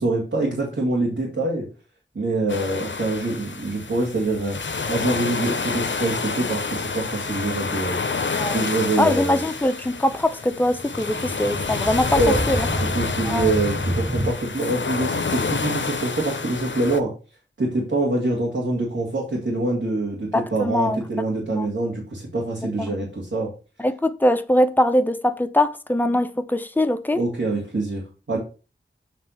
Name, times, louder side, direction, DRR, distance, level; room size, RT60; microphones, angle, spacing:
voice 1, 0.0-1.7 2.1-4.6 4.9-8.0 8.5-9.5 12.1-12.4 12.8-17.1 17.6-23.5 27.1-28.0 28.3-28.4, right 2 dB, 75° right, 2.1 m, -25 dB
sound 1, 2.5-17.0, left 4 dB, 65° left, 0.7 m, -28 dB
voice 2, 9.0-12.2 12.5-12.7 13.2-13.5 20.3-21.0 21.5-21.7 22.8-23.0 23.8-27.2, left 1 dB, 10° left, 0.7 m, -22 dB
sound 2, 10.6-14.3, equal, 15° right, 1.2 m, -28 dB
7.7 x 3.3 x 5.7 m
wide cardioid pair, 40°, 20 cm